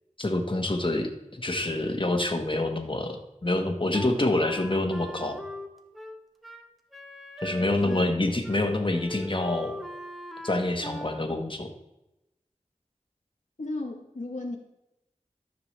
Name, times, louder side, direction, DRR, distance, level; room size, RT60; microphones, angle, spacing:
voice 1, 0.2-3.2 3.4-5.4 7.4-9.8 10.4-11.7, left 2 dB, 40° left, 4 dB, 1.4 m, -27 dB
Wind instrument woodwind instrument, 3.9-8.2 8.4-8.6 8.9-11.2, left 1 dB, ahead, 1.0 m, -40 dB
voice 2, 13.6-14.6, left 2 dB, 70° left, 0 dB, 1.0 m, -34 dB
13.5 x 6.0 x 3.3 m, 0.92 s
wide cardioid pair, 40°, 13 cm